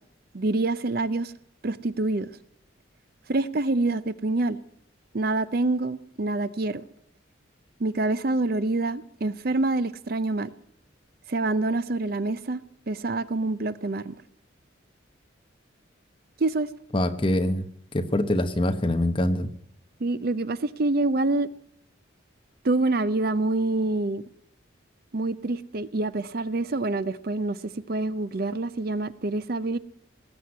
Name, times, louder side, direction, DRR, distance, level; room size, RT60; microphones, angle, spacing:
voice 1, 0.3-1.3 1.6-2.3 3.3-4.6 5.1-6.8 7.8-10.5 11.3-12.6 12.9-14.1 16.4-16.7 20.0-21.5 22.6-24.2 25.1-29.8, right 2 dB, 50° right, 15 dB, 0.6 m, -26 dB
voice 2, 16.9-17.7 17.9-19.5, left 1 dB, 25° left, 8 dB, 0.9 m, -24 dB
18.5 x 7.8 x 9.6 m, 0.70 s
head